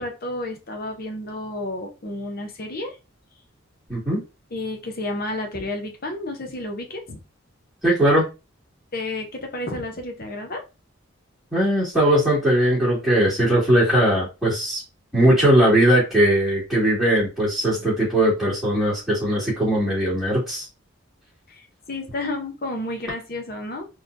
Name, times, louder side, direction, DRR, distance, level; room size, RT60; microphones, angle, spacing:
voice 1, 0.0-3.0 4.5-7.2 8.9-10.6 21.5-23.9, left 2 dB, 45° left, 0.9 m, -31 dB
voice 2, 3.9-4.2 7.8-8.3 11.5-14.8 15.1-20.7, right 1 dB, ahead, 2.1 m, -19 dB
4.1 x 3.2 x 2.6 m
head